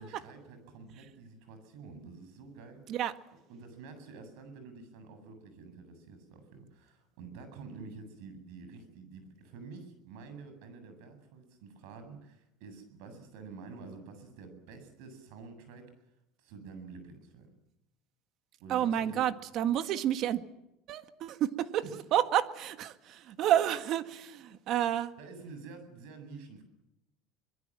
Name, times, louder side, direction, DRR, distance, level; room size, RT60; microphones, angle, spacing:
voice 1, 0.0-3.0 3.5-15.9 16.4-17.5 18.6-19.3 21.8-21.9 25.2-26.6, right 4 dB, 70° right, 8 dB, 7.9 m, -48 dB
voice 2, 18.7-20.4 20.9-25.1, right 11 dB, 45° right, 10 dB, 1.7 m, -30 dB
24.5 x 22.0 x 7.6 m, 0.88 s
cardioid pair, 150°, 0 cm